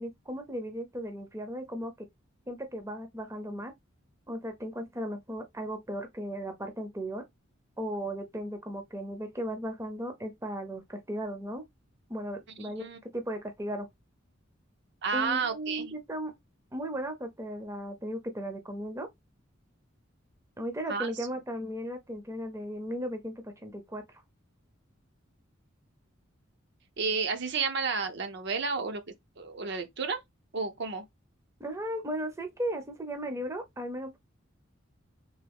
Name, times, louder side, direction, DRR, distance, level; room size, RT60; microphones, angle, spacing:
voice 1, 0.0-1.9 2.5-3.7 4.3-7.3 7.8-11.6 12.1-13.9 15.1-16.3 16.7-19.1 20.6-24.0 31.6-34.2, equal, 15° right, 0.6 m, -36 dB
voice 2, 12.6-13.0 15.0-16.0 20.9-21.1 27.0-29.0 29.4-30.2 30.5-31.1, right 5 dB, 60° right, 0.7 m, -31 dB
3.5 x 3.4 x 3.5 m
head